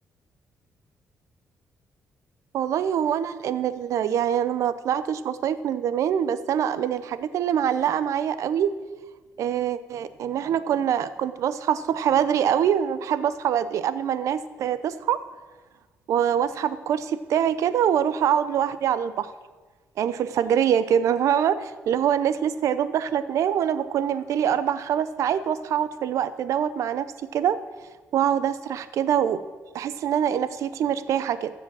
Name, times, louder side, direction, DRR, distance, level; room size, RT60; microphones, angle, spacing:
voice 1, 2.5-8.8 9.4-15.2 16.1-19.3 20.0-27.1 27.3-27.6 28.1-29.4 29.7-31.5, right 9 dB, 75° right, 14 dB, 0.6 m, -24 dB
14.5 x 5.0 x 7.5 m, 1.3 s
cardioid pair, 105°, 5 cm